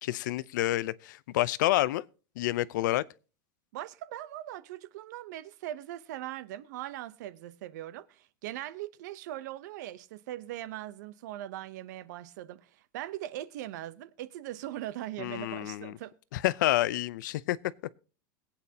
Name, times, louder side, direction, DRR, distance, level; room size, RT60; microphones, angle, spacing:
voice 1, 0.0-2.0 2.4-3.0 15.2-15.9 16.3-17.6, left 16 dB, 70° left, 0.6 m, -28 dB
voice 2, 3.7-16.1, right 13 dB, 65° right, 0.8 m, -40 dB
22.0 x 8.7 x 2.8 m
supercardioid pair, 170°, 11 cm